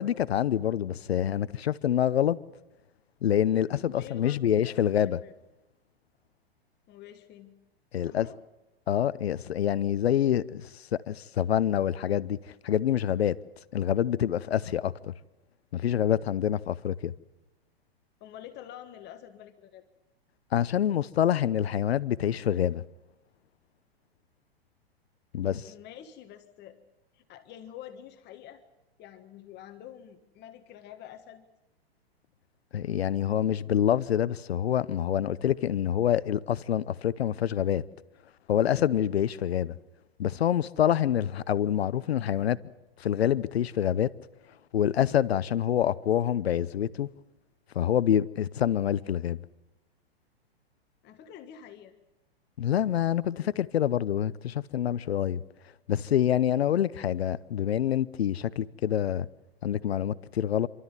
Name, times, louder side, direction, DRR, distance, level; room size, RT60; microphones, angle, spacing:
voice 1, 0.0-2.4 3.2-5.2 7.9-8.3 8.9-10.7 11.1-12.4 12.6-13.4 13.7-14.9 15.7-17.1 20.5-22.8 25.3-25.7 32.7-37.8 38.5-39.8 40.2-42.6 43.0-44.1 44.7-47.1 47.7-49.4 52.6-55.4 55.9-59.3 59.6-60.7, left 10 dB, 80° left, 0.8 m, -26 dB
voice 2, 3.9-5.3 6.9-7.6 7.9-8.4 18.2-19.8 25.6-26.8 27.1-28.6 29.0-31.4 51.0-51.9, left 10 dB, 35° left, 1.6 m, -47 dB
28.0 x 13.0 x 9.8 m
hypercardioid pair, 115°, 31 cm